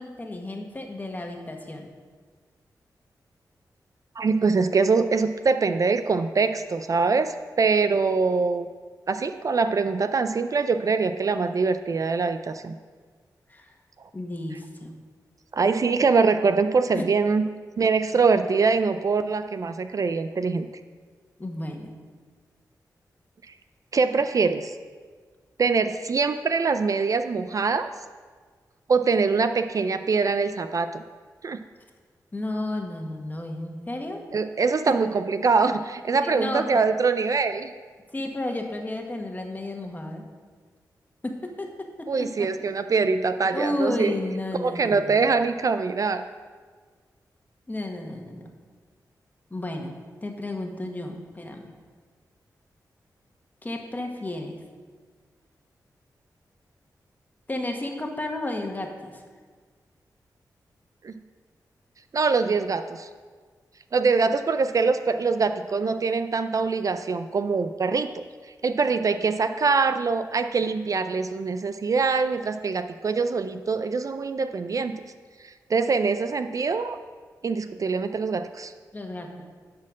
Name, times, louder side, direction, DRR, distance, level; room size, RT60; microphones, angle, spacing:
voice 1, 0.0-1.9 13.5-13.7 14.1-15.0 16.9-17.1 21.4-21.9 32.3-34.2 36.2-36.7 38.1-40.2 41.2-42.5 43.5-45.3 47.7-48.5 49.5-51.7 53.6-54.6 57.5-59.2 78.9-79.4, left 1 dB, 25° left, 2 dB, 1.4 m, -32 dB
voice 2, 4.2-8.7 9.1-12.7 15.5-17.4 17.8-20.7 23.9-24.7 25.6-27.9 28.9-31.0 31.4-31.6 34.3-37.7 42.1-44.1 44.6-46.2 61.0-61.1 62.1-63.1 63.9-68.2 68.6-75.0 75.7-77.0 77.4-78.7, right 4 dB, 50° right, 10 dB, 0.4 m, -23 dB
11.0 x 4.3 x 6.3 m, 1.5 s
cardioid pair, 60°, 7 cm